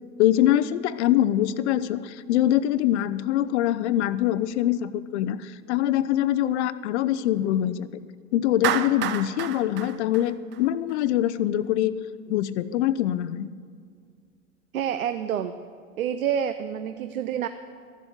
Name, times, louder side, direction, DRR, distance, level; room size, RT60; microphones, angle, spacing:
voice 1, 0.2-7.9 8.3-12.0 12.3-13.5, left 12 dB, 55° left, 15 dB, 0.6 m, -24 dB
Clapping, 8.6-10.9, right 10 dB, 30° right, 0.5 m, -29 dB
voice 2, 14.7-15.6 16.0-17.5, right 9 dB, 80° right, 10 dB, 0.6 m, -28 dB
13.0 x 7.4 x 8.0 m, 2.1 s
hypercardioid pair, 100°, 41 cm